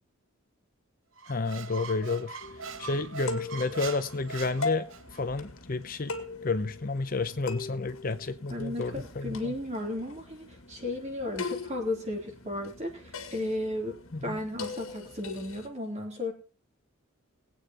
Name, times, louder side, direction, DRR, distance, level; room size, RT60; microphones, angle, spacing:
Squeak, 1.2-5.2, right 5 dB, 65° right, 0.9 m, -42 dB
voice 1, 1.3-2.4 2.8-4.9 5.1-6.1 6.4-9.5 14.1-14.4, left 3 dB, 40° left, 0.6 m, -31 dB
sound 1, 2.4-15.7, left 3 dB, 70° left, 1.9 m, -41 dB
voice 2, 8.5-16.3, left 1 dB, 30° right, 3.3 m, -34 dB
21.5 x 8.7 x 3.0 m
head